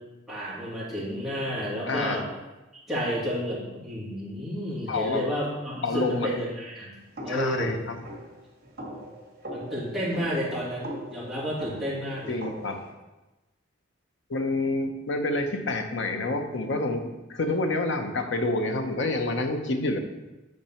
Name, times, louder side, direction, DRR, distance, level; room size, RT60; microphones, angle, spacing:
voice 1, 0.0-2.2 2.9-6.9 7.2-7.8 9.5-12.4, equal, ahead, -8 dB, 2.3 m, -31 dB
voice 2, 1.9-2.2 4.9-5.2 5.8-6.3 7.3-8.0 12.3-12.8 14.3-20.0, left 2 dB, 65° left, 5 dB, 0.8 m, -28 dB
sound 1, 7.2-12.9, right 1 dB, 50° right, 2.2 m, -41 dB
8.7 x 4.0 x 5.7 m, 1.1 s
head